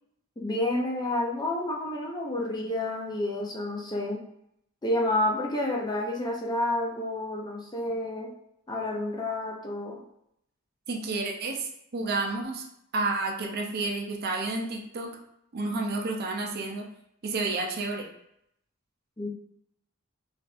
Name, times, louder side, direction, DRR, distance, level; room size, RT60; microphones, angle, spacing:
voice 1, 0.4-4.2 4.8-8.3 8.7-10.0 19.2-19.3, left 1 dB, 20° left, -1 dB, 0.5 m, -29 dB
voice 2, 10.9-12.6 12.9-15.2 15.5-16.9 17.2-18.0, right 3 dB, 50° right, 1 dB, 0.5 m, -30 dB
4.1 x 2.5 x 2.4 m, 0.75 s
head